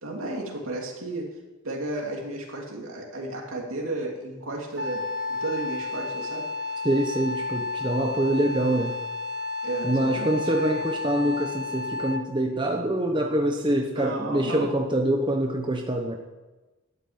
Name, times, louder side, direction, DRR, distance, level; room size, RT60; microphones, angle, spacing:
voice 1, 0.0-1.3 1.6-5.0 5.3-6.5 9.6-10.4 13.9-14.7, right 2 dB, 70° right, 0 dB, 3.0 m, -33 dB
Wind instrument woodwind instrument, 4.8-12.4, left 3 dB, 50° right, 1.1 m, -32 dB
voice 2, 6.8-9.0 9.8-16.2, right 1 dB, 20° right, 1 dB, 1.0 m, -25 dB
12.0 x 9.1 x 8.9 m, 1.2 s
head